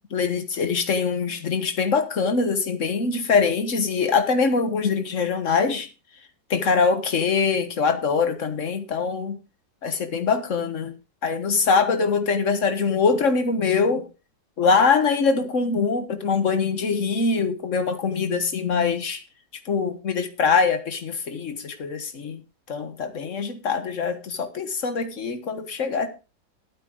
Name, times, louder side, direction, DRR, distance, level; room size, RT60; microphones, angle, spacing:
voice 1, 0.1-5.9 6.5-9.4 9.8-10.9 11.2-14.1 14.6-19.2 19.6-22.4 22.7-26.1, left 5 dB, 45° left, 1.7 m, -23 dB
13.5 x 8.7 x 3.8 m
omnidirectional pair, 1.9 m